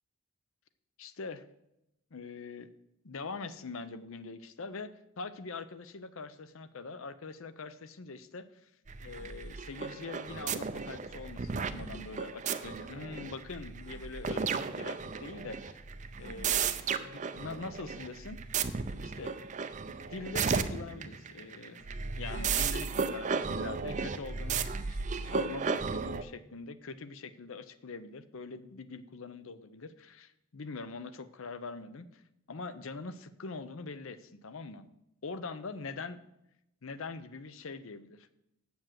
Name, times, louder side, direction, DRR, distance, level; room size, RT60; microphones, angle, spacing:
voice 1, 1.0-1.4 2.1-2.7 3.0-4.9 5.2-8.5 9.0-15.8 16.2-18.4 19.0-19.3 19.9-21.9 22.2-32.2 32.5-34.9 35.2-36.2 36.8-38.3, left 4 dB, 65° left, 14 dB, 0.6 m, -43 dB
sound 1, 8.9-26.2, right 5 dB, 35° right, 0.5 m, -34 dB
7.7 x 7.1 x 7.5 m, 0.85 s
head